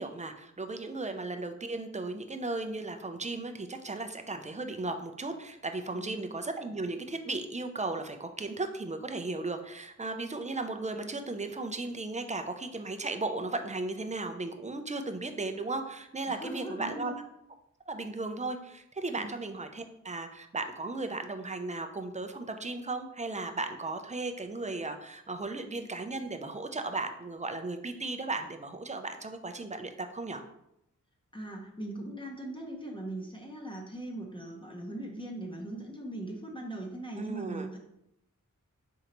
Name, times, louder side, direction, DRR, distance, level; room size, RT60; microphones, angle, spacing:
voice 1, 0.0-17.1 17.9-30.4 37.1-37.7, right 3 dB, 25° right, 6 dB, 0.4 m, -36 dB
voice 2, 16.3-17.1 19.2-19.4 31.3-37.8, right 1 dB, 15° left, 0 dB, 0.8 m, -40 dB
4.4 x 3.8 x 2.9 m, 0.81 s
wide cardioid pair, 75°, 31 cm